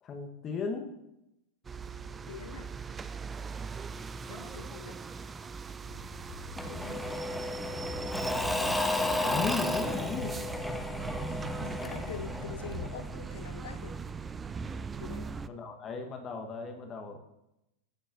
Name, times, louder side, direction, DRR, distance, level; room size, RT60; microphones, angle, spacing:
voice 1, 0.0-0.9 9.2-10.4 15.1-17.2, left 5 dB, 30° left, 4 dB, 1.2 m, -36 dB
sound 1, 1.6-15.5, right 5 dB, 15° right, 0.3 m, -41 dB
voice 2, 2.3-2.7 4.3-5.0 6.7-7.1 11.6-14.0 15.0-15.3, left 8 dB, 60° left, 14 dB, 0.5 m, -45 dB
sound 2, 5.8-12.9, equal, 40° right, 1.5 m, -44 dB
Engine / Mechanisms / Drill, 6.6-13.2, left 1 dB, ahead, 0.7 m, -33 dB
15.0 x 6.7 x 2.6 m, 0.88 s
figure-of-eight pair, 90°, 0 cm